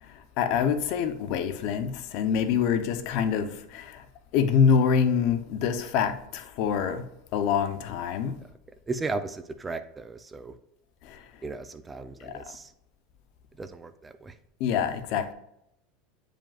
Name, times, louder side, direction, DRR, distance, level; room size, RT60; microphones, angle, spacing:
voice 1, 0.0-4.0 4.3-7.0 7.3-8.3 11.0-11.2 12.2-12.4 14.6-15.3, left 7 dB, 60° left, 9 dB, 0.7 m, -26 dB
voice 2, 8.9-10.5 11.4-12.7 13.6-14.3, right 3 dB, 15° right, 10 dB, 0.5 m, -35 dB
8.8 x 5.1 x 2.4 m, 0.80 s
supercardioid pair, 125°, 0 cm